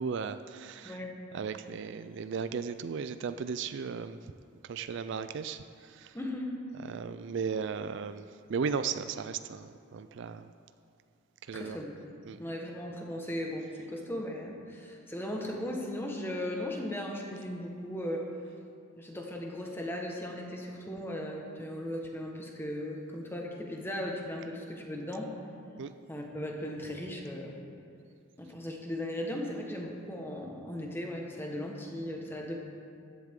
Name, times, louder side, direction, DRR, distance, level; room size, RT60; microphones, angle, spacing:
voice 1, 0.0-1.0 1.3-4.2 4.7-5.6 5.9-6.1 6.9-8.2 8.5-10.5 11.5-11.8 12.3-12.4 25.8-25.9, right 6 dB, 60° right, 11 dB, 0.4 m, -35 dB
voice 2, 0.8-1.2 6.1-6.5 11.5-12.1 12.4-18.3 19.0-25.4 26.1-27.6 28.4-32.6, left 1 dB, 10° left, 0 dB, 1.3 m, -37 dB
15.0 x 11.0 x 3.7 m, 2.4 s
head